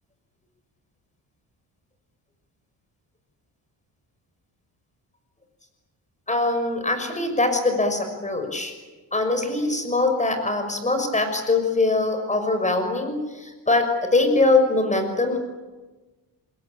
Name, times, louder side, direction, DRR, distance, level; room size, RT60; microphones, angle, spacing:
voice 1, 6.3-8.7 9.1-15.4, left 2 dB, 15° left, 7 dB, 6.1 m, -22 dB
28.5 x 21.5 x 8.8 m, 1.2 s
cardioid pair, 115°, 43 cm